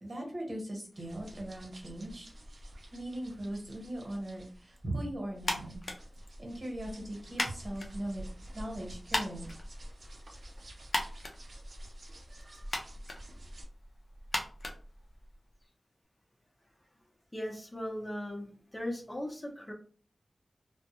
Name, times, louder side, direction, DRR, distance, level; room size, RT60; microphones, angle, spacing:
voice 1, 0.0-2.3 2.9-5.8 6.4-8.2 8.5-9.5, right 1 dB, 55° right, 0 dB, 1.1 m, -39 dB
sound 1, 0.9-13.6, equal, 70° right, 0.6 m, -50 dB
sound 2, 5.4-15.6, left 1 dB, 65° left, 0.5 m, -40 dB
voice 2, 17.3-19.7, left 1 dB, 20° left, -1 dB, 0.7 m, -38 dB
2.3 x 2.1 x 2.9 m, 0.42 s
wide cardioid pair, 80°, 0 cm